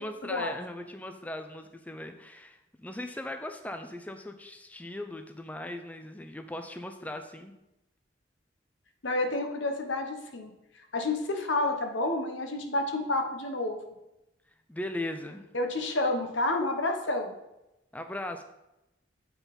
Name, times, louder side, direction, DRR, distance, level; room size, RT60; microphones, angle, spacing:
voice 1, 0.0-7.5 14.7-15.5 17.9-18.4, left 1 dB, 10° left, 6 dB, 0.4 m, -38 dB
voice 2, 9.0-10.5 10.9-13.8 15.5-17.3, left 2 dB, 80° left, 5 dB, 1.0 m, -29 dB
8.2 x 4.1 x 5.2 m, 0.92 s
head